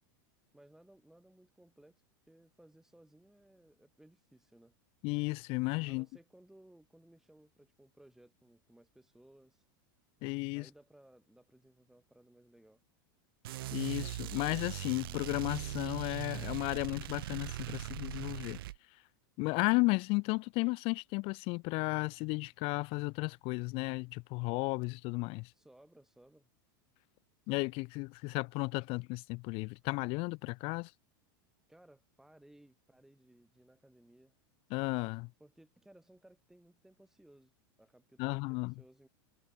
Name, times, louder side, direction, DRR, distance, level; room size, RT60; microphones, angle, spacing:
voice 1, 0.5-4.8 5.9-9.7 10.5-12.8 25.5-26.5 31.7-34.4 35.4-37.5 37.8-39.1, right 1 dB, 5° right, 3.1 m, -61 dB
voice 2, 5.0-6.1 10.2-10.7 13.7-18.6 19.4-25.5 27.5-30.9 34.7-35.3 38.2-38.7, left 27 dB, 50° left, 0.9 m, -34 dB
sound 1, 13.4-18.8, right 15 dB, 80° right, 1.4 m, -40 dB
hypercardioid pair, 115°, 12 cm